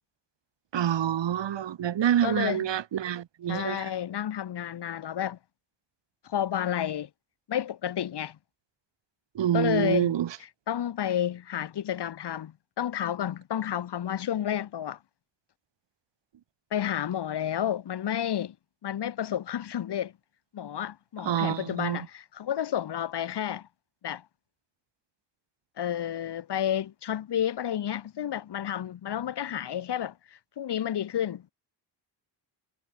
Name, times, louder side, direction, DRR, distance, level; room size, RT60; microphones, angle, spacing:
voice 1, 0.7-3.9 9.3-10.4 21.2-22.1, right 10 dB, 70° right, 3.4 m, -27 dB
voice 2, 2.2-2.6 3.5-5.4 6.2-7.1 7.5-8.4 9.5-10.1 10.7-15.0 16.7-18.6 18.8-20.1 20.5-23.7 24.0-24.2 25.8-31.5, left 10 dB, 60° left, 2.0 m, -31 dB
wide cardioid pair, 150°, 45 cm